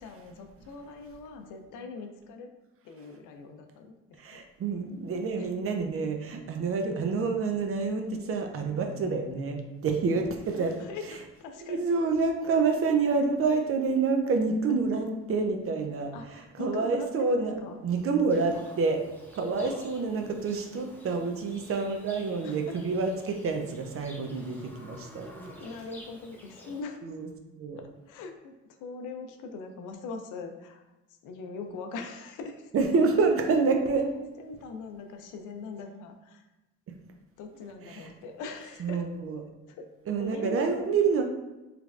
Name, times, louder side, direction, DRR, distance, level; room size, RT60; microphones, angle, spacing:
voice 1, 0.0-2.5 2.8-4.4 5.4-5.5 10.5-11.8 16.1-17.8 19.4-19.9 22.4-22.8 25.3-27.0 27.8-32.9 34.1-36.5 37.4-39.0 39.7-39.9 40.2-41.0, left 4 dB, 85° left, 6 dB, 0.5 m, -41 dB
voice 2, 4.2-10.7 11.6-16.1 16.6-19.0 19.3-25.5 27.0-27.3 27.6-27.8 32.7-34.1 37.9-38.1 38.8-39.4 40.1-41.2, right 4 dB, 50° right, 5 dB, 0.5 m, -28 dB
Livestock farm animals working animals, 18.3-26.8, left 1 dB, 5° left, 0.7 m, -50 dB
3.3 x 3.0 x 2.4 m, 1.0 s
cardioid pair, 90°, 30 cm